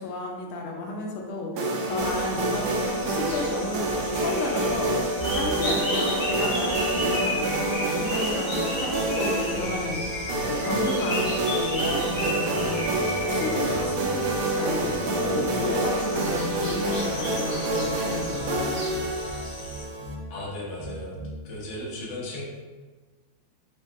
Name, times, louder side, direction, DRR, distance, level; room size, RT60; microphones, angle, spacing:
voice 1, 0.0-10.0 10.4-11.2 11.5-18.8, left 2 dB, 85° left, 1 dB, 1.5 m, -32 dB
sound 1, 1.6-20.1, right 2 dB, 90° right, 0.8 m, -27 dB
sound 2, 2.0-19.8, left 1 dB, 35° left, 1.1 m, -34 dB
sound 3, 9.5-11.3 11.8-14.4 14.8-17.3 17.8-20.3 20.8-21.4, equal, 60° right, 1.2 m, -41 dB
voice 2, 20.3-21.2 21.4-22.4, left 1 dB, 55° left, -5 dB, 0.8 m, -35 dB
4.5 x 2.6 x 2.4 m, 1.3 s
omnidirectional pair, 2.3 m